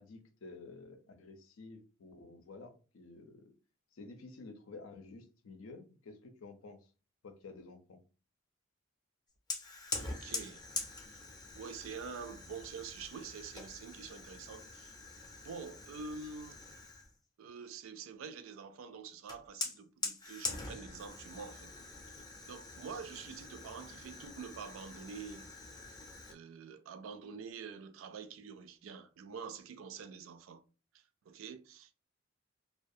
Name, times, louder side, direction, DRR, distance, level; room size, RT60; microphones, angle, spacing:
voice 1, 0.0-3.5 3.9-6.9 7.2-8.0, left 3 dB, 85° left, 0.5 m, -51 dB
Fire, 9.5-17.1 19.3-26.3, left 3 dB, 20° left, 0.4 m, -44 dB
voice 2, 10.0-10.6 11.1-11.2 11.5-15.0 15.4-16.6 17.4-21.7 22.4-25.5 26.3-30.6 30.9-32.0, right 5 dB, 80° right, 0.4 m, -46 dB
2.3 x 2.2 x 2.6 m
head